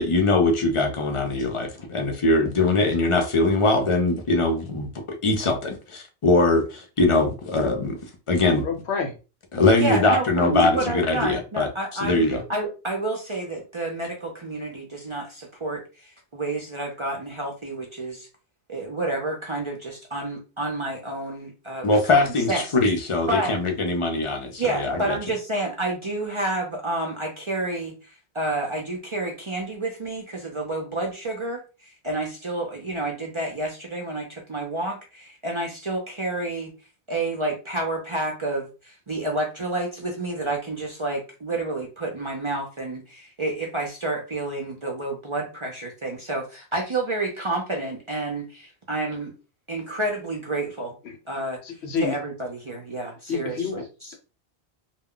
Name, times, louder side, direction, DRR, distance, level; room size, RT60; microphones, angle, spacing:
voice 1, 0.0-8.0 8.3-8.6 9.5-11.7 12.0-12.4 21.8-25.2, left 2 dB, 40° left, 0.5 m, -22 dB
voice 2, 8.6-9.1 51.0-51.2 51.6-52.2 53.3-53.8, left 5 dB, 85° left, 0.9 m, -28 dB
voice 3, 9.8-18.3 18.7-22.2 22.5-22.6 23.3-23.6 24.6-36.7 37.1-49.3 49.7-51.0 51.3-54.1, right 2 dB, 40° right, 0.5 m, -29 dB
2.2 x 2.1 x 3.6 m
omnidirectional pair, 1.1 m